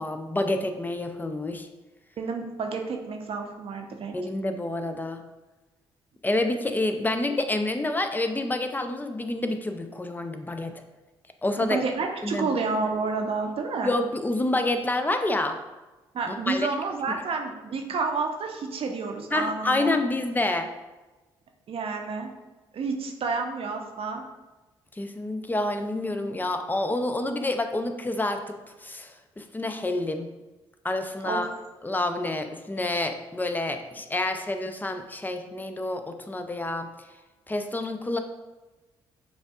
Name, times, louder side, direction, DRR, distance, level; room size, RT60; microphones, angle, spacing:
voice 1, 0.0-1.7 4.1-5.2 6.2-10.7 11.4-11.8 12.2-12.6 13.8-15.6 16.3-16.7 19.3-20.7 25.0-28.6 28.8-30.3 30.8-31.5 31.8-36.9 37.5-38.2, left 2 dB, 15° left, 7 dB, 0.5 m, -28 dB
voice 2, 2.2-4.1 11.6-14.0 16.1-20.0 21.7-22.3 22.7-24.2 31.2-31.4, right 4 dB, 55° right, 3 dB, 0.7 m, -30 dB
6.9 x 2.6 x 2.4 m, 1.2 s
hypercardioid pair, 50°, 12 cm